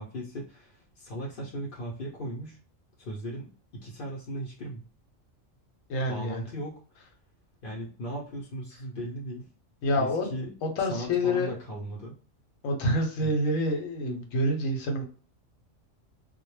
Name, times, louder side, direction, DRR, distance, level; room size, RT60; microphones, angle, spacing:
voice 1, 0.0-2.6 3.0-3.5 3.7-4.8 6.1-7.0 7.6-9.5 9.9-10.5 10.8-12.2 13.2-13.3, equal, 55° left, -4 dB, 0.6 m, -37 dB
voice 2, 5.9-6.4 9.8-10.3 10.6-11.5 12.6-15.1, left 1 dB, 85° left, 3 dB, 1.0 m, -27 dB
2.2 x 2.0 x 3.0 m, 0.39 s
omnidirectional pair, 1.3 m